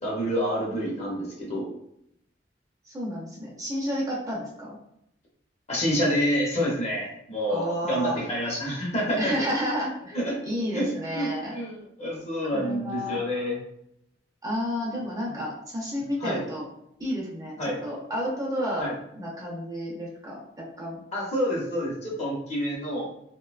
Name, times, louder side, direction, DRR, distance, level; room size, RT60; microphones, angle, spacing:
voice 1, 0.0-1.7 5.7-9.4 10.1-10.4 10.7-13.6 16.2-16.4 17.6-17.8 18.8-18.9 21.1-23.1, equal, 40° left, -3 dB, 0.7 m, -28 dB
voice 2, 2.8-4.8 7.5-8.2 9.2-11.5 12.5-13.2 14.4-16.6 17.0-18.9 19.2-21.0, equal, 20° right, -4 dB, 0.5 m, -31 dB
2.6 x 2.1 x 2.4 m, 0.75 s
head